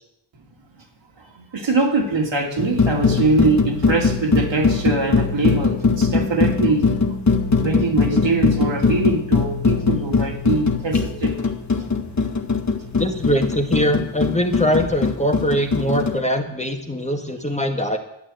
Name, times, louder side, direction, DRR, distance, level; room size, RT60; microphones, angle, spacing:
voice 1, 1.4-6.8 7.6-11.4 12.8-12.9, right 3 dB, 75° right, 1 dB, 2.9 m, -22 dB
sound 1, 2.6-16.2, left 4 dB, 35° left, 1.6 m, -21 dB
voice 2, 12.9-18.0, equal, 15° left, 4 dB, 1.6 m, -22 dB
11.5 x 9.2 x 7.8 m, 0.79 s
wide cardioid pair, 85°, 46 cm